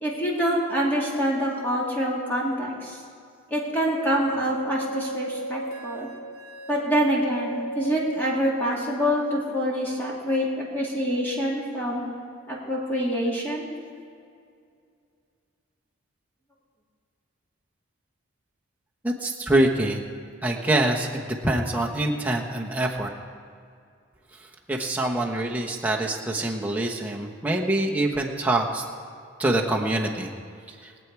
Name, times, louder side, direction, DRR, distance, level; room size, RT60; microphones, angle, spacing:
voice 1, 0.0-3.0 3.5-6.1 6.7-12.0 12.5-13.7, equal, 10° left, -5 dB, 2.3 m, -26 dB
sound 1, 3.7-8.7, right 1 dB, 25° left, 2.2 m, -35 dB
voice 2, 19.0-20.0 20.4-21.1 21.4-23.1 24.7-28.8 29.4-30.3, right 1 dB, 10° right, -1 dB, 1.1 m, -25 dB
22.0 x 8.4 x 4.7 m, 2.4 s
head